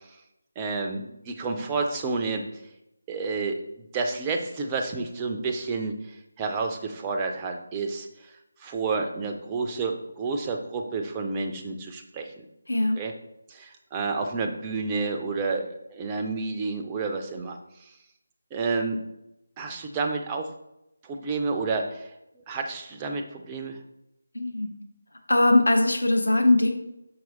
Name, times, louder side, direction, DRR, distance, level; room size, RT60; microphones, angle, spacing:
voice 1, 0.6-2.4 3.1-3.6 3.9-8.3 8.6-12.4 13.0-13.1 13.5-17.9 18.5-19.0 19.6-20.5 21.0-22.1 22.5-23.8, right 4 dB, 15° right, 3 dB, 0.5 m, -30 dB
voice 2, 12.7-13.0 24.3-24.7 25.3-26.7, left 2 dB, 65° left, 3 dB, 1.2 m, -20 dB
6.2 x 4.4 x 4.0 m, 0.88 s
figure-of-eight pair, 155°, 0 cm